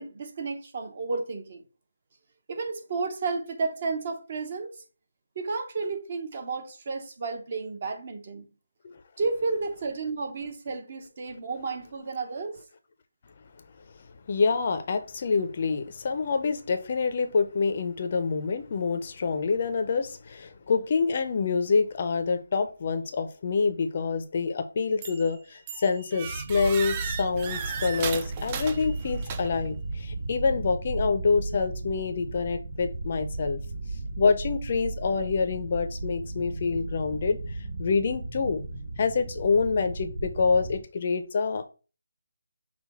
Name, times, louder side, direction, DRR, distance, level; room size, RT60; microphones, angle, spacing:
voice 1, 0.0-1.6 2.5-4.8 5.4-8.5 9.2-12.6, right 4 dB, 35° right, 0.7 m, -32 dB
voice 2, 14.3-33.6 34.2-37.4 37.8-38.6 39.0-41.6, left 4 dB, 35° left, 0.5 m, -26 dB
sound 1, 25.0-25.3 25.7-29.7, right 7 dB, 20° right, 0.3 m, -36 dB
sound 2, 26.2-40.8, right 2 dB, 70° right, 1.9 m, -35 dB
5.8 x 2.2 x 4.1 m
figure-of-eight pair, 170°, 0 cm